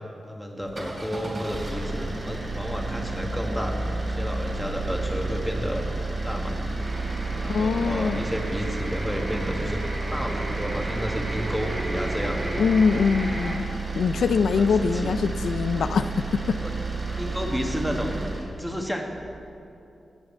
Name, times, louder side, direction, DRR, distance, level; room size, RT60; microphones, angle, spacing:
voice 1, 0.3-6.7 7.4-9.8 10.1-12.7 14.5-15.1 16.6-16.7 17.2-18.2 18.6-19.1, equal, ahead, 2 dB, 1.4 m, -31 dB
sound 1, 0.6-18.5, right 3 dB, 45° right, 2.8 m, -31 dB
sound 2, 6.8-13.6, right 1 dB, 30° right, 2.1 m, -35 dB
voice 2, 7.5-8.2 12.6-13.7 14.0-16.6, left 5 dB, 90° left, 11 dB, 0.3 m, -23 dB
15.5 x 8.2 x 4.3 m, 2.7 s
wide cardioid pair, 85°, 0 cm